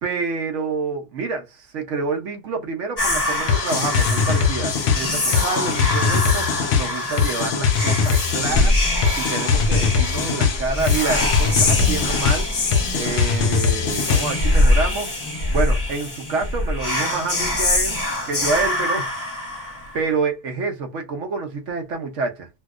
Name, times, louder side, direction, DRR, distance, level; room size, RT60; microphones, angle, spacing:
voice 1, 0.0-8.7 9.1-12.5 12.9-15.1 15.5-18.0 18.3-19.1 19.5-22.5, right 4 dB, 60° right, 0.9 m, -27 dB
Whispering, 3.0-20.1, left 1 dB, 30° left, 1.1 m, -24 dB
sound 1, 3.5-14.5, left 6 dB, 60° left, 0.7 m, -21 dB
3.0 x 2.7 x 2.4 m
omnidirectional pair, 1.6 m